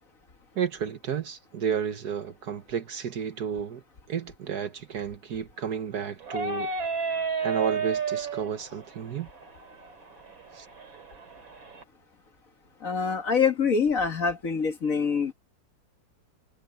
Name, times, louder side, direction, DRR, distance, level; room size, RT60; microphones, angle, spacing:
voice 1, 0.6-3.8 4.1-6.7 7.0-9.3 10.5-10.7, right 7 dB, 60° right, 1.5 m, -32 dB
sound 1, 6.2-11.8, right 5 dB, 85° right, 3.8 m, -33 dB
voice 2, 12.8-15.3, left 5 dB, 45° left, 2.0 m, -25 dB
omnidirectional pair, 2.1 m